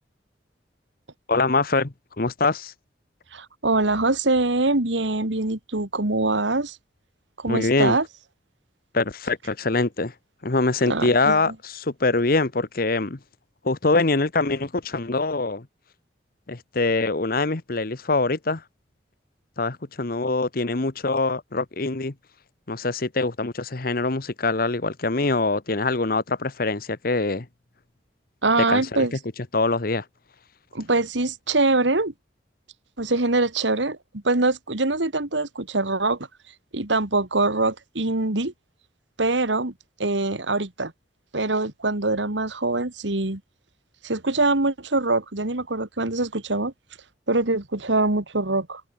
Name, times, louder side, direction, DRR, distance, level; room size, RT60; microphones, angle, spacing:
voice 1, 1.3-2.7 7.5-8.0 8.9-10.1 10.4-13.2 13.6-15.7 16.5-18.6 19.6-22.1 22.7-27.5 28.6-29.2 29.5-30.0, left 3 dB, 55° left, 1.2 m, -24 dB
voice 2, 3.3-6.8 7.4-8.1 10.8-11.4 28.4-29.1 30.7-32.1 33.0-36.2 36.7-38.5 39.2-39.7 40.0-40.9 41.3-43.4 44.0-46.7 47.3-48.8, right 2 dB, 85° right, 2.5 m, -23 dB
head